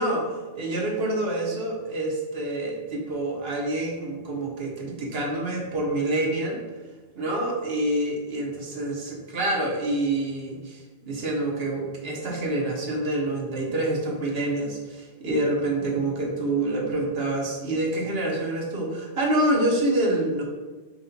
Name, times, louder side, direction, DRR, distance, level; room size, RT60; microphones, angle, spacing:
voice 1, 0.0-6.6 7.2-20.4, right 1 dB, 60° right, -1 dB, 1.2 m, -27 dB
5.7 x 3.4 x 2.7 m, 1.3 s
omnidirectional pair, 1.2 m